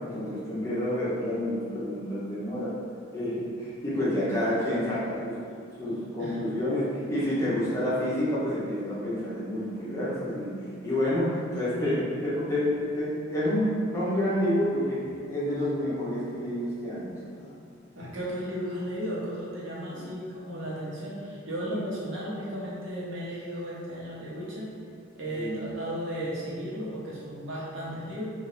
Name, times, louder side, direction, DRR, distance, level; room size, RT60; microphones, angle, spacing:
voice 1, 0.0-2.8 3.1-5.4 5.8-10.5 10.8-17.5 19.9-20.1 21.6-21.8 25.3-25.6, left 1 dB, 15° left, -10 dB, 1.0 m, -29 dB
voice 2, 17.9-24.7 25.2-28.3, equal, 75° right, -7 dB, 1.0 m, -35 dB
3.5 x 2.6 x 3.3 m, 2.4 s
head